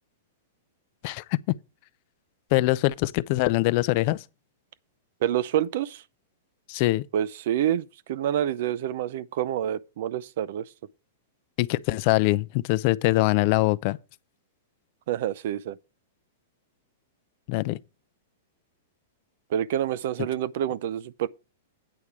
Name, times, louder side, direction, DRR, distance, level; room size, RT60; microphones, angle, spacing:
voice 1, 2.5-4.2 6.7-7.0 11.6-14.0 17.5-17.8, left 19 dB, 45° left, 0.5 m, -23 dB
voice 2, 5.2-6.0 7.1-10.6 15.1-15.8 19.5-21.3, right 10 dB, 60° right, 0.6 m, -27 dB
8.8 x 4.8 x 6.8 m
hypercardioid pair, 145°, 0 cm